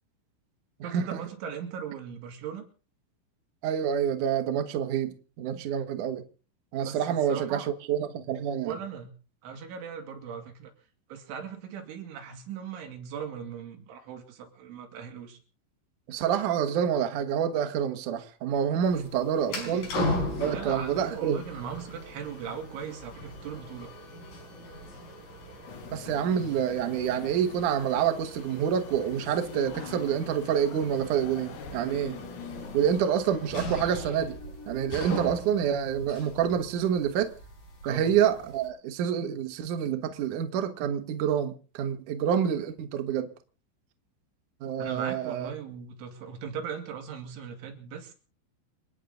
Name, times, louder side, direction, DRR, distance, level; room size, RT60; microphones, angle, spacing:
voice 1, 0.8-2.7 6.7-7.7 8.6-9.1 9.4-10.7 11.1-15.4 19.5-19.9 20.4-23.9 37.8-38.1 44.8-48.1, right 7 dB, 70° right, 4.7 m, -39 dB
voice 2, 3.6-6.2 6.7-8.8 16.1-19.9 20.4-21.4 25.9-32.2 32.7-34.4 34.7-37.3 37.8-43.3 44.6-45.5, right 8 dB, 90° right, 1.7 m, -27 dB
sound 1, 18.8-38.7, left 1 dB, 45° left, 6.6 m, -38 dB
sound 2, 25.7-33.1, left 10 dB, 65° left, 3.1 m, -45 dB
28.5 x 9.5 x 3.8 m
omnidirectional pair, 6.0 m